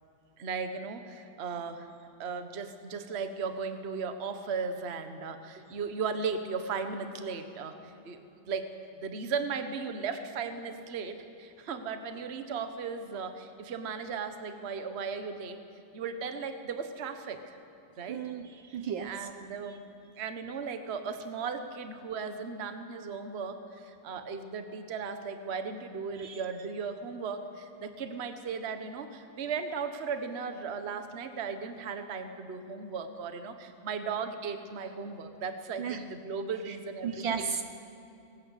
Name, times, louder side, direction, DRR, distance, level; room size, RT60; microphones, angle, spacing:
voice 1, 0.4-1.9 2.2-8.2 8.5-15.6 15.9-17.6 18.0-18.2 19.0-19.9 20.2-37.5, right 5 dB, 35° right, 8 dB, 1.2 m, -36 dB
voice 2, 18.1-19.3 26.2-26.4 35.8-36.0 36.7-36.8 37.0-37.6, right 7 dB, 65° right, 8 dB, 1.4 m, -35 dB
20.5 x 17.5 x 8.4 m, 2.8 s
omnidirectional pair, 2.4 m